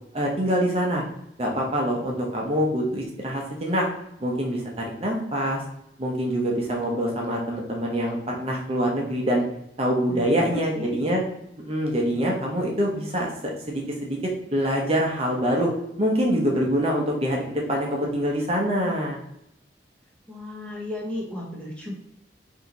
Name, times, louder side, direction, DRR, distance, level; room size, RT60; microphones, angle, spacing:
voice 1, 0.1-1.0 1.4-3.9 4.2-5.6 6.0-9.4 9.8-11.2 11.6-14.2 14.5-15.7 16.0-19.2, equal, 35° right, -1 dB, 0.8 m, -25 dB
voice 2, 10.1-11.0 20.3-22.0, left 1 dB, 5° left, -3 dB, 1.1 m, -34 dB
4.8 x 2.8 x 3.9 m, 0.79 s
head